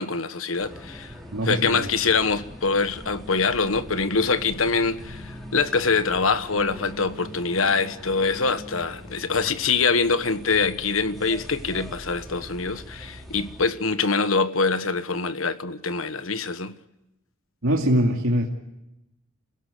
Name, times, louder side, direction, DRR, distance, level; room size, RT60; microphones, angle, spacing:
voice 1, 0.0-1.1 1.4-16.7, left 4 dB, 75° left, 1.4 m, -24 dB
sound 1, 0.6-13.6, equal, ahead, 4.5 m, -42 dB
voice 2, 1.3-1.9 17.6-18.5, equal, 80° right, 2.5 m, -22 dB
28.5 x 17.0 x 8.4 m
head